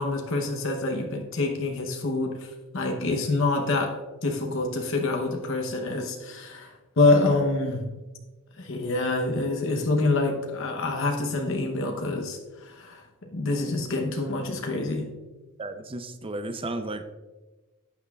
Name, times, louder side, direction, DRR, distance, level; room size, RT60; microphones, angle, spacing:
voice 1, 0.0-2.5 2.7-3.9 4.2-6.7 7.0-7.9 8.6-13.0 13.3-15.1, left 2 dB, 65° left, 3 dB, 0.9 m, -26 dB
voice 2, 15.6-17.0, right 2 dB, 25° right, 9 dB, 0.6 m, -33 dB
12.0 x 8.1 x 2.4 m, 1.2 s
head